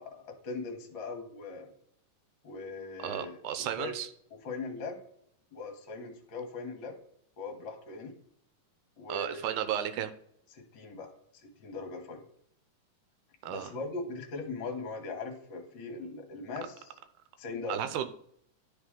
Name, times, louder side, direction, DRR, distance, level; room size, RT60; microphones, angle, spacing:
voice 1, 0.0-1.7 2.4-3.9 4.4-5.0 5.5-7.0 7.4-8.1 9.0-9.6 10.5-11.1 11.4-12.2 13.5-16.8 17.4-17.8, left 3 dB, 50° left, 2 dB, 1.6 m, -40 dB
voice 2, 3.0-4.1 9.1-10.1 13.4-13.7 17.7-18.1, right 10 dB, 80° right, 10 dB, 2.0 m, -33 dB
11.5 x 4.0 x 3.7 m, 0.70 s
omnidirectional pair, 3.7 m